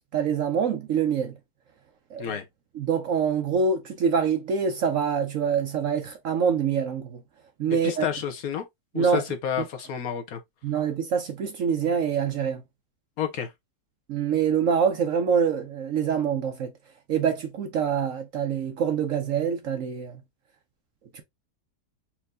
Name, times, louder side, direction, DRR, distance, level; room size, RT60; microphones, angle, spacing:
voice 1, 0.1-1.3 2.1-2.4 2.7-7.2 7.6-8.0 8.9-9.2 10.6-12.6 14.1-16.7 17.1-20.1 21.1-21.2, right 7 dB, 60° right, 0.9 m, -25 dB
voice 2, 7.8-8.6 8.9-10.4 13.2-13.5, left 8 dB, 65° left, 1.1 m, -30 dB
4.5 x 2.7 x 3.5 m
omnidirectional pair, 1.8 m